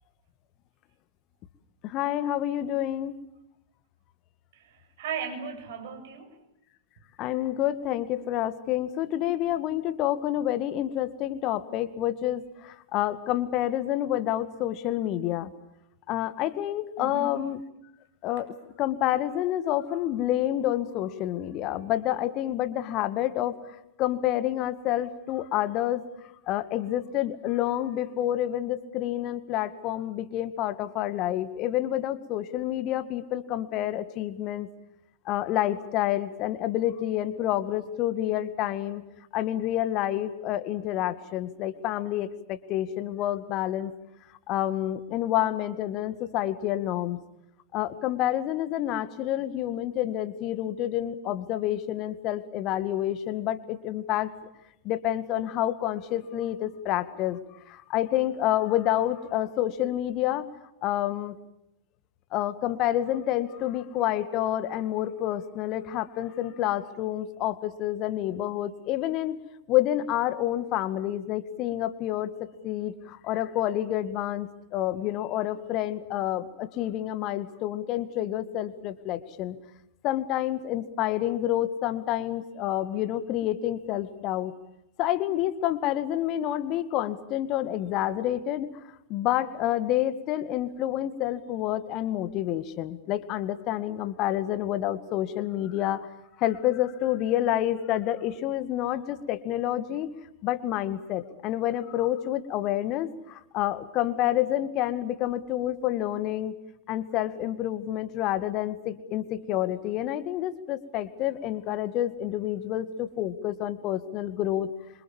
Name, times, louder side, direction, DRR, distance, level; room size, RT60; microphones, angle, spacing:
voice 1, 1.8-3.2 7.2-15.5 16.1-17.6 18.2-18.5 18.8-26.0 26.5-34.7 35.3-39.0 39.3-43.9 44.5-47.2 47.7-54.3 54.8-60.5 60.8-61.4 62.3-69.4 69.7-79.6 80.0-84.5 85.0-88.7 89.1-96.1 96.4-100.1 100.4-106.5 106.9-114.7, left 13 dB, 40° left, 12 dB, 2.1 m, -28 dB
voice 2, 4.5-6.4 17.0-17.3, right 6 dB, 55° right, 6 dB, 7.6 m, -36 dB
27.0 x 26.5 x 7.3 m, 0.84 s
figure-of-eight pair, 95°, 0 cm